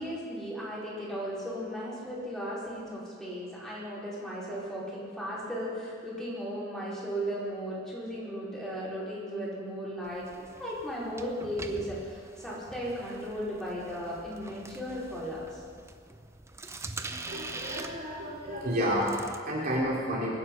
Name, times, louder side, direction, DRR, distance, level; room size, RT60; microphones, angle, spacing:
voice 1, 0.0-15.6, equal, 5° left, -8 dB, 5.0 m, -36 dB
sound 1, 10.0-19.4, right 2 dB, 15° right, 0.7 m, -44 dB
voice 2, 17.3-20.3, equal, 50° right, -5 dB, 3.0 m, -30 dB
23.0 x 9.9 x 5.6 m, 2.1 s
head